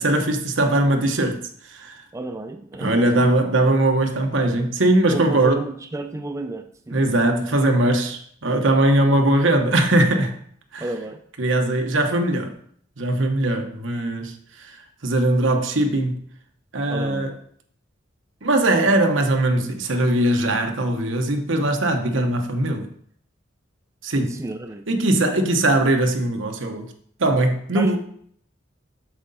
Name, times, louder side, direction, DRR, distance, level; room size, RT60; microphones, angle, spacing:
voice 1, 0.0-1.4 1.7-2.0 2.8-5.6 6.9-10.4 10.7-10.8 11.4-12.5 13.0-14.3 14.6-14.7 15.0-16.2 16.7-17.4 18.4-22.9 24.0-24.4 24.9-26.9 27.2-28.0, right 1 dB, 70° right, 1.1 m, -20 dB
voice 2, 2.1-3.3 5.1-7.1 10.8-11.2 16.9-17.3 24.2-24.8 27.7-28.0, right 2 dB, 15° right, 0.4 m, -32 dB
8.0 x 6.5 x 4.1 m
head